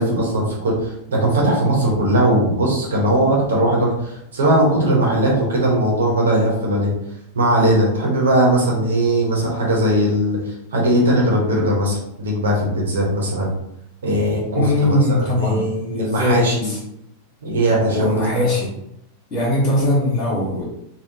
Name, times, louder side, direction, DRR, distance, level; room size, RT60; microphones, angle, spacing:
voice 1, 0.0-6.9 7.3-13.5 14.0-16.7 17.4-18.4, right 1 dB, 65° right, -3 dB, 1.0 m, -19 dB
voice 2, 14.5-16.8 17.9-18.7 19.3-20.7, left 1 dB, 30° left, -8 dB, 1.3 m, -20 dB
3.5 x 2.2 x 2.7 m, 0.79 s
figure-of-eight pair, 90°, 0 cm